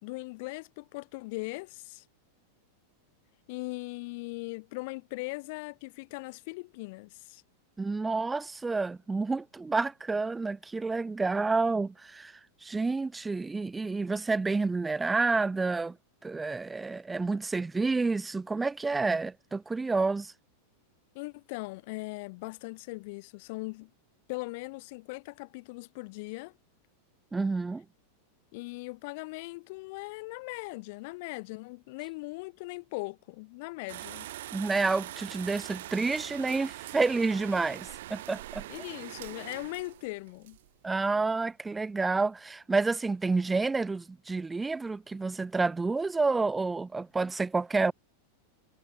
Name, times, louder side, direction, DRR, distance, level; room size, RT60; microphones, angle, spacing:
voice 1, 0.0-2.0 3.5-7.4 21.1-23.9 24.3-26.5 28.5-34.3 38.7-40.6, left 26 dB, 50° left, 3.4 m, -39 dB
voice 2, 7.8-15.9 16.2-20.3 27.3-27.8 34.5-38.6 40.8-47.9, right 3 dB, 10° right, 0.4 m, -29 dB
sound 1, 33.9-41.2, right 15 dB, 55° right, 1.1 m, -43 dB
figure-of-eight pair, 90°, 0 cm